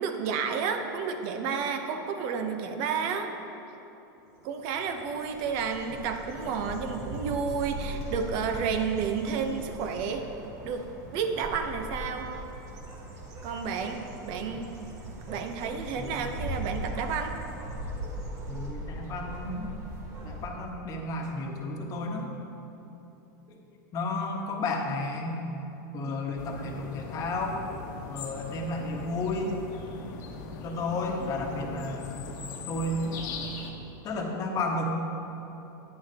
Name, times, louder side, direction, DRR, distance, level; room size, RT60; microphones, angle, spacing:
voice 1, 0.0-3.3 4.4-10.2 10.6-12.3 13.4-14.7 15.3-17.3, right 6 dB, 50° right, 5 dB, 0.9 m, -31 dB
sound 1, 4.3-20.5, right 1 dB, 25° right, 1.6 m, -39 dB
voice 2, 16.0-16.3 18.4-19.7 20.2-22.3 23.5-23.6 23.9-25.4 25.9-27.6 28.1-29.6 30.6-32.3 32.7-33.3 34.0-34.8, left 2 dB, 30° left, 1 dB, 1.2 m, -32 dB
sound 2, 26.4-33.7, left 4 dB, 65° left, 1.2 m, -40 dB
10.5 x 9.9 x 2.9 m, 3.0 s
supercardioid pair, 140°, 11 cm